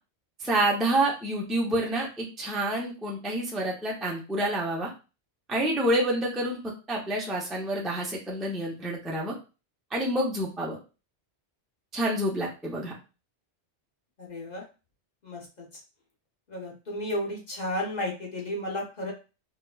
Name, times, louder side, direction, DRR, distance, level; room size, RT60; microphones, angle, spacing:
voice 1, 0.4-4.9 5.5-9.3 9.9-10.8 11.9-12.9, right 1 dB, ahead, -3 dB, 0.5 m, -28 dB
voice 2, 14.2-14.6 15.2-15.7 16.5-19.1, left 1 dB, 40° left, -2 dB, 1.2 m, -33 dB
4.6 x 2.2 x 2.3 m, 0.31 s
omnidirectional pair, 1.1 m